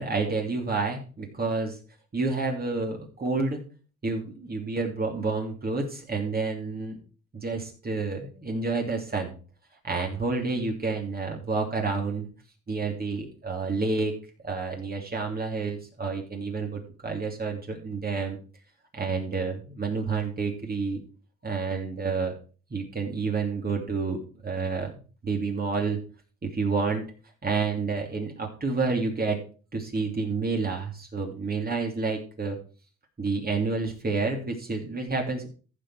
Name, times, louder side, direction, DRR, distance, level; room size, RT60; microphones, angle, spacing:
voice 1, 0.0-1.8 2.1-3.6 4.0-7.0 7.3-9.3 9.8-12.3 12.7-14.1 14.4-18.4 18.9-21.0 21.4-22.3 22.7-26.0 26.4-27.1 27.4-29.4 29.7-32.6 33.2-35.5, right 4 dB, 30° right, 1 dB, 2.9 m, -29 dB
15.0 x 5.3 x 4.8 m, 0.38 s
cardioid pair, 90°, 30 cm